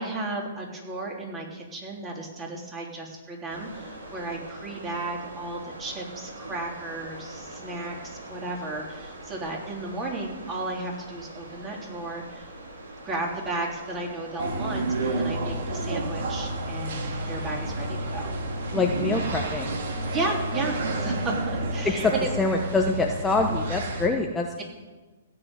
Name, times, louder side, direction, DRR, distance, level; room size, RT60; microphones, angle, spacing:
voice 1, 0.0-12.5 13.0-18.3 20.1-22.3, right 2 dB, 20° right, -1 dB, 3.6 m, -34 dB
sound 1, 3.5-21.4, right 1 dB, 85° right, 3.5 m, -42 dB
sound 2, 14.4-24.1, right 2 dB, 60° right, 2.1 m, -30 dB
voice 2, 18.7-19.8 21.8-22.1 22.4-24.6, left 3 dB, 10° left, 2 dB, 1.0 m, -25 dB
16.5 x 5.9 x 9.1 m, 1.3 s
hypercardioid pair, 125°, 0 cm